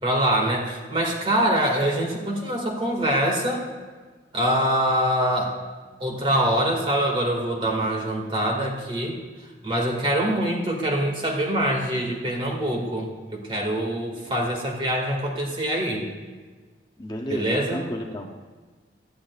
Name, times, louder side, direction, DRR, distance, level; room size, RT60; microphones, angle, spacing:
voice 1, 0.0-3.7 4.3-5.6 6.0-9.2 9.6-16.1 17.3-17.9, right 1 dB, 30° right, 0 dB, 2.0 m, -24 dB
voice 2, 17.0-18.4, equal, 20° left, 2 dB, 0.6 m, -33 dB
17.5 x 12.0 x 2.4 m, 1.4 s
head